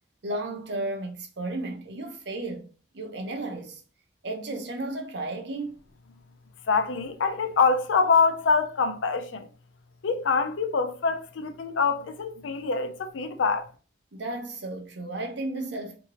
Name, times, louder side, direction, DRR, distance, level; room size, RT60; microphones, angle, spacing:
voice 1, 0.2-2.7 2.9-3.8 4.2-5.8 14.1-16.0, right 2 dB, 65° right, 0.7 m, -33 dB
voice 2, 6.7-9.5 10.0-13.6, left 5 dB, 80° left, 0.4 m, -25 dB
2.8 x 2.6 x 2.9 m
head